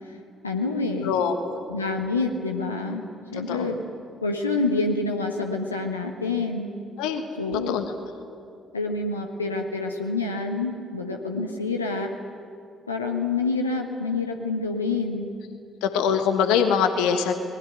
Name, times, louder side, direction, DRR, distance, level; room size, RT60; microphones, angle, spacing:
voice 1, 0.4-1.1 1.7-3.0 3.3-3.8 4.2-6.7 7.4-7.8 8.7-12.1 12.9-15.3, left 3 dB, 85° left, 2 dB, 1.4 m, -27 dB
voice 2, 1.0-1.6 3.3-3.8 7.0-7.3 7.7-7.9 15.8-17.3, left 7 dB, 65° left, 7 dB, 1.3 m, -23 dB
23.0 x 20.0 x 9.3 m, 2.4 s
figure-of-eight pair, 45°, 0 cm